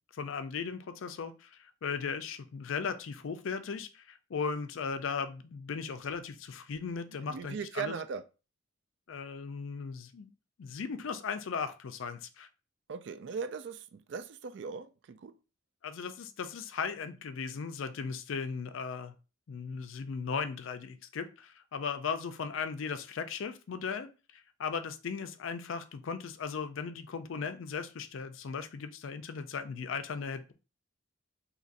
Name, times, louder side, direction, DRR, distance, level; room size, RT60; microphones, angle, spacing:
voice 1, 0.1-8.0 9.1-10.3 10.6-12.5 15.8-19.1 19.5-30.5, left 5 dB, 70° left, 0.4 m, -37 dB
voice 2, 7.3-8.2 12.9-15.4, right 5 dB, 55° right, 0.3 m, -39 dB
2.8 x 2.5 x 4.0 m
head